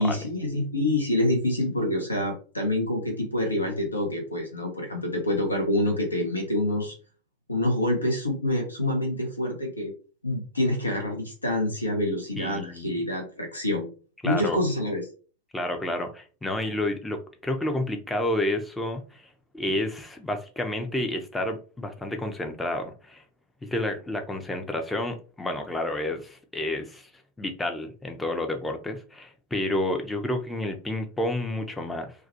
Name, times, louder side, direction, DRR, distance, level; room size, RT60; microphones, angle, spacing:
voice 1, 0.0-6.9 7.5-9.9 10.2-13.9 14.2-15.1, left 1 dB, 80° left, 0.5 m, -26 dB
voice 2, 12.4-13.0 14.2-14.6 15.5-19.3 19.5-23.2 23.6-27.1 27.4-32.1, left 1 dB, 10° left, 0.4 m, -30 dB
2.3 x 2.1 x 2.6 m
figure-of-eight pair, 90°, 0 cm